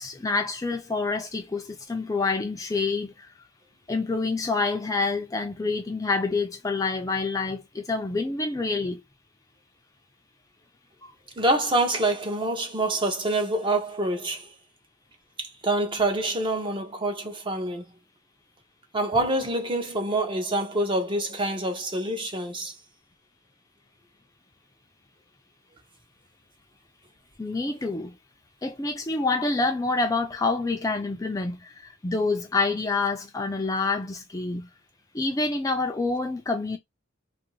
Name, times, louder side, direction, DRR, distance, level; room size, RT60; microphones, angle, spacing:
voice 1, 0.0-3.3 3.9-9.0 11.0-11.1 27.4-28.2 28.6-34.7 35.1-36.8, left 3 dB, 15° left, 0.4 m, -27 dB
voice 2, 11.4-14.5 15.4-17.8 18.9-22.7, right 2 dB, 25° right, 0.6 m, -26 dB
2.6 x 2.5 x 3.0 m
head